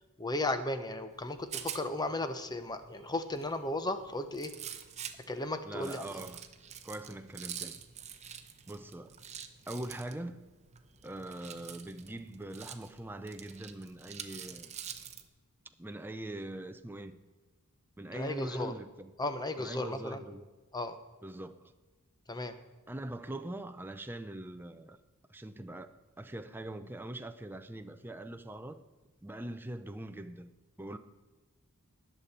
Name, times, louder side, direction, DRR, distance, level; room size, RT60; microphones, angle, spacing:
voice 1, 0.2-4.5 5.3-6.0 18.1-18.7 19.2-20.2 20.7-21.0 22.3-22.5, left 2 dB, 20° left, 0.9 m, -35 dB
Rattle, 1.1-15.3, right 8 dB, 30° right, 0.9 m, -47 dB
voice 2, 5.6-6.4 6.8-7.8 8.7-9.2 9.7-10.4 11.0-14.7 15.8-17.2 18.0-19.1 19.6-20.4 21.2-21.7 22.9-25.0 25.3-25.9 26.2-28.8 29.2-30.5 30.8-31.0, right 1 dB, 10° right, 0.5 m, -42 dB
19.5 x 6.9 x 4.3 m
head